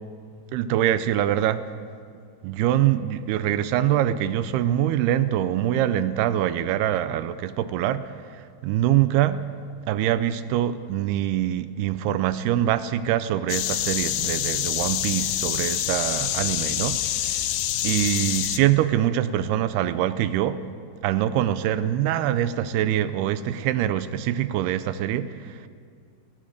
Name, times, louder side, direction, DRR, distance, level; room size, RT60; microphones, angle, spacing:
voice 1, 0.5-1.6 2.4-9.4 9.9-17.5 17.8-20.6 21.0-25.7, right 12 dB, 80° right, 13 dB, 2.5 m, -24 dB
sound 1, 13.5-18.6, left 12 dB, 85° left, 1.9 m, -26 dB
19.0 x 17.5 x 8.0 m, 2.2 s
omnidirectional pair, 4.9 m